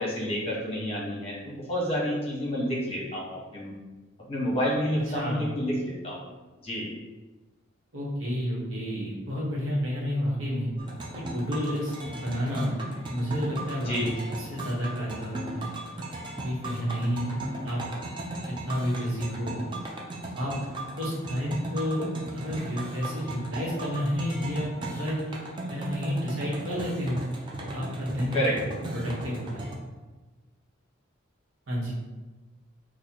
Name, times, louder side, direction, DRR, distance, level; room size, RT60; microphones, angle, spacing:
voice 1, 0.0-3.7 4.3-6.3 6.6-6.9 12.1-12.2 13.9-14.1 28.3-28.5, equal, 30° left, -4 dB, 0.9 m, -29 dB
voice 2, 4.9-5.5 7.9-10.7 11.1-12.8 13.0-15.7 16.4-17.8 18.4-19.6 20.3-20.5 21.0-22.1 22.3-25.2 25.7-27.2 27.6-28.5 28.9-29.7 31.7-31.9, equal, 75° right, -6 dB, 1.2 m, -30 dB
sound 1, 10.8-29.8, right 2 dB, 25° right, 0.4 m, -37 dB
4.1 x 2.4 x 2.9 m, 1.2 s
head